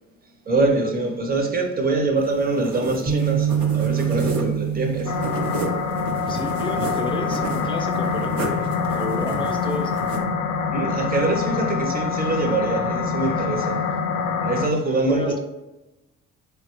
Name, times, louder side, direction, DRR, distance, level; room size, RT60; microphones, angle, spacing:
voice 1, 0.5-5.2 10.7-13.8 14.4-15.4, right 3 dB, 30° right, 0.6 m, -24 dB
sound 1, 2.2-10.2, right 2 dB, 75° right, 0.7 m, -33 dB
sound 2, 3.1-9.5, right 9 dB, 60° right, 1.1 m, -28 dB
sound 3, 5.1-14.7, left 5 dB, 75° left, 0.5 m, -25 dB
voice 2, 6.2-9.9 13.4-13.6 14.9-15.4, left 2 dB, 15° left, 0.5 m, -31 dB
3.7 x 2.2 x 2.9 m
cardioid pair, 90°, 30 cm